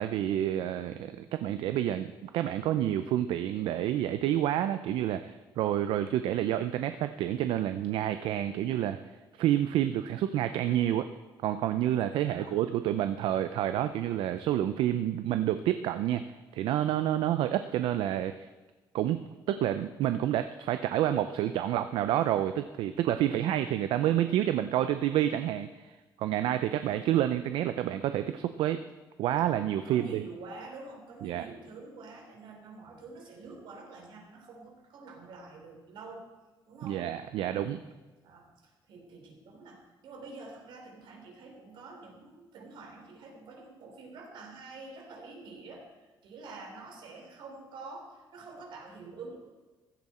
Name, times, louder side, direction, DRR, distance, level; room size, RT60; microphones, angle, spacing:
voice 1, 0.0-9.0 9.4-11.1 11.4-16.2 16.5-18.5 18.9-19.2 19.5-28.8 29.2-30.2 31.2-31.5 36.8-37.8, right 12 dB, 90° right, 10 dB, 0.6 m, -29 dB
voice 2, 12.1-12.6 26.7-27.1 29.9-36.3 36.7-37.0 37.5-37.9 38.2-45.9 46.2-49.5, right 3 dB, 75° right, 2 dB, 3.4 m, -47 dB
15.5 x 12.0 x 4.3 m, 1.2 s
cardioid pair, 135°, 8 cm